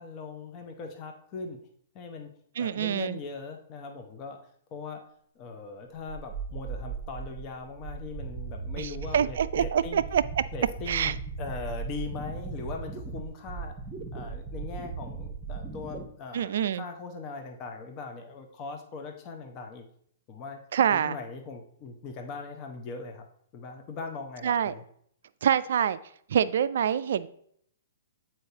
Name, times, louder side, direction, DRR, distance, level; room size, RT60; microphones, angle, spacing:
voice 1, 0.0-1.6 1.9-2.3 2.6-4.4 4.7-5.0 5.3-10.0 10.5-13.8 14.1-19.9 20.3-20.6 20.9-23.3 23.5-24.8, left 4 dB, 35° left, 4 dB, 0.8 m, -40 dB
voice 2, 2.6-3.2 8.8-10.2 10.9-11.1 16.3-16.8 20.7-21.2 24.4-24.7 25.4-26.0 26.3-27.3, right 9 dB, 60° right, 15 dB, 0.3 m, -26 dB
sound 1, 6.1-16.1, right 5 dB, 20° right, 0.9 m, -38 dB
7.8 x 4.4 x 2.8 m, 0.66 s
figure-of-eight pair, 120°, 0 cm